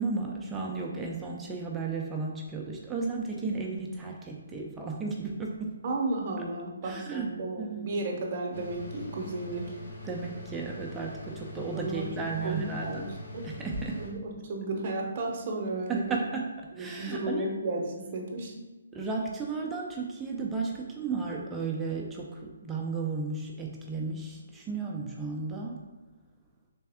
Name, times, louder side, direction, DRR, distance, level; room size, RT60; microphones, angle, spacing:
voice 1, 0.0-5.8 6.8-7.3 7.6-7.9 10.0-13.0 13.4-14.0 15.9-16.5 16.8-17.5 18.9-25.8, right 4 dB, 10° right, -2 dB, 0.4 m, -34 dB
voice 2, 5.8-9.7 11.7-12.1 12.4-13.5 13.9-16.2 16.8-18.5, right 2 dB, 35° right, 1 dB, 0.8 m, -33 dB
sound 1, 8.5-14.1, left 1 dB, 55° left, 1.1 m, -43 dB
3.4 x 3.3 x 3.4 m, 1.2 s
hypercardioid pair, 160°, 0 cm